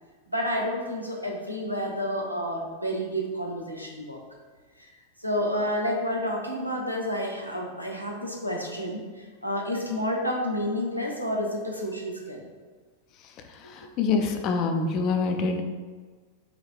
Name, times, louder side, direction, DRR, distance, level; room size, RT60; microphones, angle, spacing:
voice 1, 0.3-4.2 4.8-4.9 5.2-12.5, equal, 90° right, 0 dB, 0.7 m, -30 dB
voice 2, 13.7-15.6, left 4 dB, 40° left, 5 dB, 0.5 m, -25 dB
4.7 x 3.1 x 3.6 m, 1.4 s
figure-of-eight pair, 90°, 0 cm